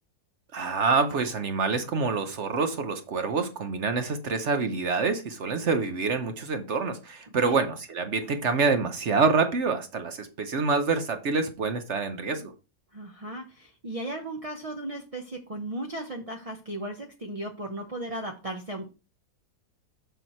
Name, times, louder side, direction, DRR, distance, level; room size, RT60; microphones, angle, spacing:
voice 1, 0.5-12.4, right 4 dB, 55° right, 0.9 m, -26 dB
voice 2, 12.9-18.9, right 1 dB, 40° right, 0.5 m, -36 dB
7.1 x 6.1 x 4.3 m
omnidirectional pair, 1.9 m